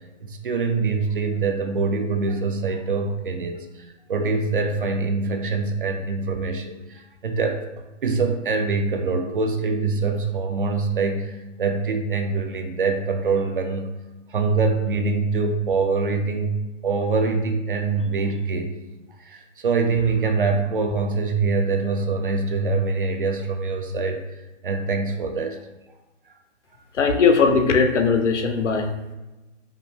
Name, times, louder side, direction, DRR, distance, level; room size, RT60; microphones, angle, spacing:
voice 1, 0.2-7.6 8.0-14.0 14.3-18.7 19.2-24.2 24.6-25.6, right 4 dB, 45° right, 5 dB, 0.5 m, -24 dB
voice 2, 27.0-28.9, left 5 dB, 75° left, 5 dB, 0.7 m, -19 dB
5.1 x 2.2 x 3.3 m, 1.0 s
hypercardioid pair, 155°, 37 cm